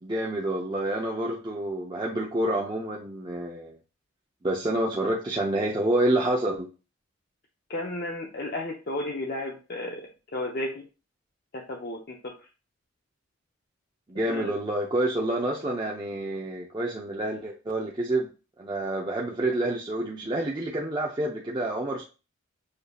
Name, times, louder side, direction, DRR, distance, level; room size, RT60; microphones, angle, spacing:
voice 1, 0.0-3.8 4.4-6.7 14.1-18.3 18.6-22.0, right 1 dB, 20° right, -2 dB, 0.5 m, -28 dB
voice 2, 7.7-10.1 10.3-10.8 11.5-12.3 14.2-14.5, left 1 dB, 45° left, 1 dB, 0.5 m, -33 dB
6.4 x 2.7 x 2.3 m, 0.33 s
head